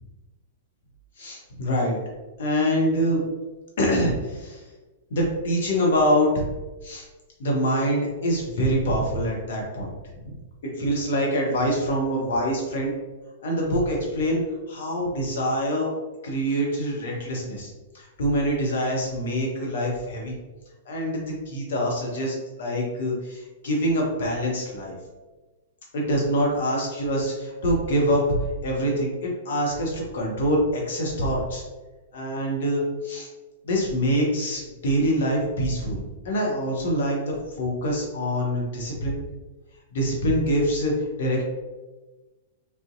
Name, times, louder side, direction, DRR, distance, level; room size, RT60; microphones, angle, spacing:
voice 1, 1.2-2.0 2.4-3.2 3.8-4.6 5.1-6.3 6.8-7.0 7.4-9.9 10.2-10.4 10.8-12.9 13.4-14.4 14.7-15.9 16.2-17.7 17.9-20.4 20.9-24.9 25.9-28.2 28.6-31.6 32.1-33.3 33.6-39.2 39.9-41.4, equal, 65° left, -2 dB, 0.8 m, -25 dB
2.6 x 2.1 x 2.5 m, 1.2 s
figure-of-eight pair, 105°, 0 cm